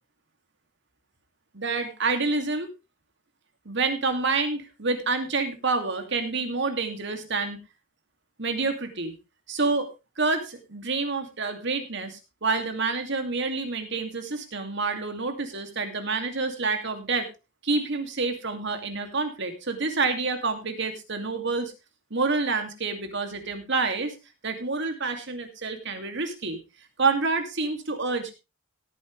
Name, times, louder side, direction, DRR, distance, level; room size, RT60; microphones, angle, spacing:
voice 1, 1.5-2.7 3.7-7.6 8.4-9.1 9.5-9.9 10.2-17.3 17.6-21.7 22.1-24.1 24.4-26.6 27.0-28.3, right 3 dB, 60° right, 7 dB, 2.5 m, -28 dB
17.0 x 9.3 x 3.3 m, 0.26 s
head